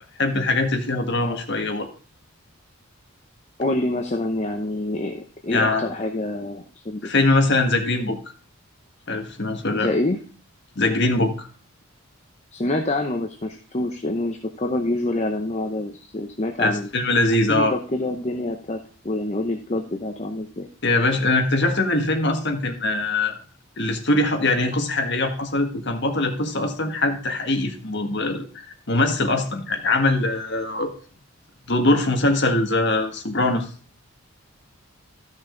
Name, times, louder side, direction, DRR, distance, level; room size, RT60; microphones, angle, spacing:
voice 1, 0.2-1.9 5.5-5.8 7.0-8.2 9.1-9.9 10.7-11.5 16.6-17.7 20.8-23.4 23.8-30.9 31.7-33.7, left 2 dB, 50° left, 5 dB, 1.6 m, -22 dB
voice 2, 3.6-7.1 9.7-10.2 12.5-16.9 17.5-18.8 19.0-20.7, left 2 dB, 30° left, 4 dB, 0.8 m, -26 dB
14.0 x 6.2 x 3.9 m, 0.40 s
head